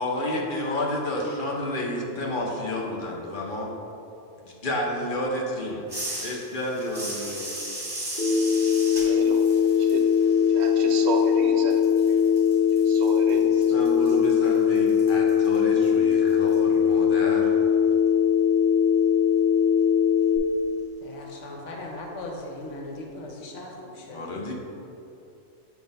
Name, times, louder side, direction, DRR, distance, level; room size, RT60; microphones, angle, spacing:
voice 1, 0.0-3.7 4.6-5.9 6.2-7.6 13.3-17.5 24.1-24.5, left 1 dB, 50° left, -2 dB, 0.9 m, -30 dB
sound 1, 5.9-11.4 11.7-16.6, right 1 dB, 20° right, 1.4 m, -38 dB
Telephone, 8.2-20.4, left 8 dB, 15° left, 1.5 m, -21 dB
voice 2, 9.1-10.1 10.5-11.8 12.8-13.4, right 3 dB, 70° right, 4 dB, 0.8 m, -32 dB
voice 3, 21.0-24.4, left 2 dB, 80° left, 0 dB, 1.2 m, -38 dB
7.6 x 2.6 x 5.1 m, 2.8 s
omnidirectional pair, 1.2 m